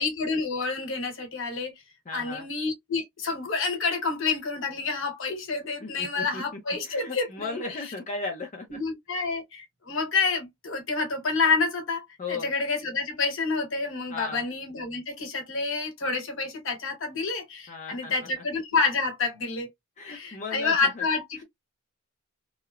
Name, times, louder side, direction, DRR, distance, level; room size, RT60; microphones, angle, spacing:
voice 1, 0.0-1.7 2.1-7.6 8.7-19.7 20.0-21.4, left 4 dB, 60° left, 1.2 m, -28 dB
voice 2, 2.1-2.5 5.8-8.8 12.2-12.5 14.1-14.5 17.7-18.4 20.0-21.0 21.4-21.5, left 4 dB, 35° left, 0.5 m, -36 dB
3.0 x 2.1 x 2.3 m
head